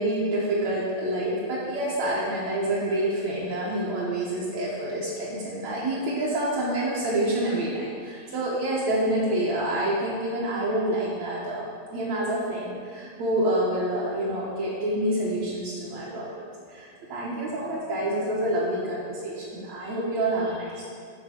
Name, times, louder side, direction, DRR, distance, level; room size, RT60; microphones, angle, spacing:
voice 1, 0.0-11.6 11.9-16.3 16.7-20.9, right 1 dB, 60° right, -8 dB, 2.2 m, -27 dB
9.9 x 4.6 x 5.9 m, 2.1 s
omnidirectional pair, 4.0 m